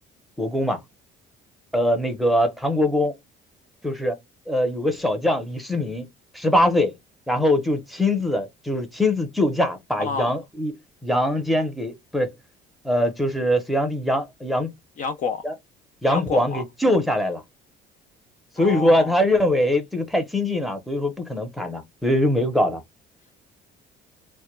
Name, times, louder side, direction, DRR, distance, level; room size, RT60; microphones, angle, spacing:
voice 1, 0.4-0.8 1.7-3.1 3.8-4.2 4.5-6.9 7.3-10.7 11.0-12.3 12.8-14.7 15.4-15.5 16.0-17.4 18.6-22.8, left 1 dB, ahead, 0.6 m, -22 dB
voice 2, 10.0-10.3 15.0-15.4 16.1-16.6 18.6-19.2, left 5 dB, 45° left, 0.4 m, -29 dB
2.2 x 2.1 x 3.0 m
cardioid pair, 110°, 19 cm